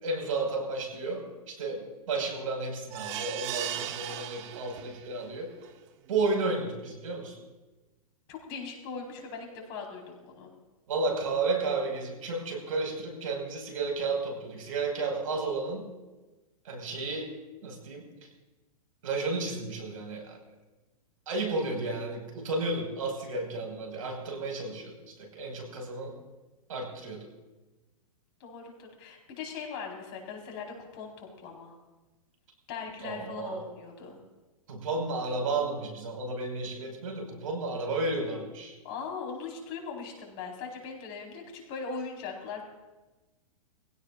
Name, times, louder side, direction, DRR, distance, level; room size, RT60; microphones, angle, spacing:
voice 1, 0.0-5.5 6.1-7.4 10.9-15.9 16.6-17.3 17.6-18.1 19.0-20.4 21.3-26.2 26.7-27.3 33.0-33.6 34.7-38.8, right 3 dB, 70° right, 1 dB, 5.3 m, -32 dB
sound 1, 2.9-5.2 5.6-5.7 6.1-6.2, right 11 dB, 50° right, 1.2 m, -37 dB
voice 2, 8.3-10.5 28.4-31.7 32.7-34.2 38.8-42.6, left 5 dB, 50° left, 0 dB, 4.4 m, -40 dB
23.5 x 16.5 x 2.5 m, 1.1 s
hypercardioid pair, 120°, 18 cm